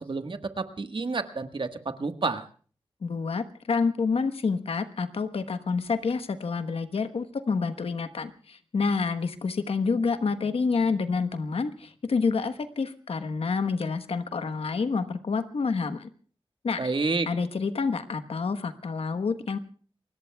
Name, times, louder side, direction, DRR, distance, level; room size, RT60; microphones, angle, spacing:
voice 1, 0.0-2.4 16.8-17.3, right 3 dB, 60° right, 8 dB, 1.5 m, -29 dB
voice 2, 3.0-16.1 16.6-16.9 17.3-19.6, left 4 dB, 80° left, 10 dB, 1.2 m, -28 dB
28.5 x 21.0 x 2.3 m, 0.42 s
cardioid pair, 55°, 10 cm